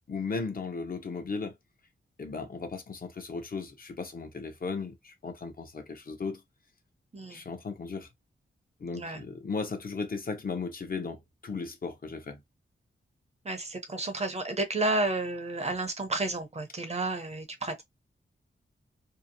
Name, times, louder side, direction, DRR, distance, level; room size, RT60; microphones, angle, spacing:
voice 1, 0.1-1.5 2.2-6.4 7.3-8.1 8.8-12.4, left 4 dB, 45° left, 0.6 m, -36 dB
voice 2, 13.4-17.8, right 2 dB, 30° right, 0.6 m, -31 dB
2.8 x 2.0 x 2.5 m
wide cardioid pair, 115°, 21 cm